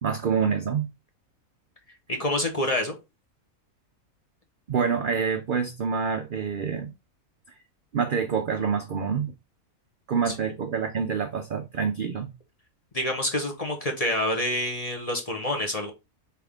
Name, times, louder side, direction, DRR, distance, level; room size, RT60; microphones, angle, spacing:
voice 1, 0.0-0.9 4.7-6.9 7.9-9.3 10.1-12.3, right 6 dB, 70° right, 0.5 m, -27 dB
voice 2, 2.1-2.9 10.3-10.4 12.9-15.9, left 1 dB, 30° left, 0.8 m, -27 dB
4.2 x 3.5 x 3.6 m
omnidirectional pair, 1.5 m